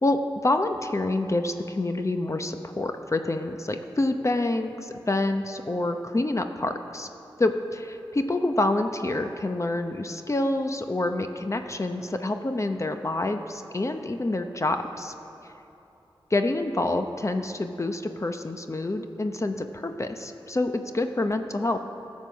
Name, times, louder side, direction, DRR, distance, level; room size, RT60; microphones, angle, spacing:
voice 1, 0.0-7.1 7.4-15.1 16.3-21.8, left 2 dB, 35° left, 7 dB, 0.7 m, -27 dB
13.5 x 7.4 x 6.2 m, 2.8 s
cardioid pair, 50°, 9 cm